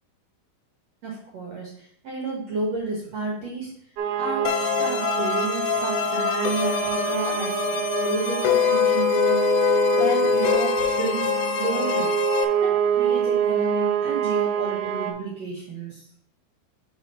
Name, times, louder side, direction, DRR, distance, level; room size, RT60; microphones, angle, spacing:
voice 1, 1.0-3.7 4.2-7.6 8.0-12.1 12.6-16.1, right 2 dB, 60° right, -3 dB, 1.9 m, -31 dB
sound 1, 4.0-15.1, right 8 dB, 85° right, 2.7 m, -26 dB
sound 2, 4.5-12.5, left 10 dB, 80° left, 2.3 m, -24 dB
4.8 x 4.7 x 5.4 m, 0.67 s
omnidirectional pair, 4.5 m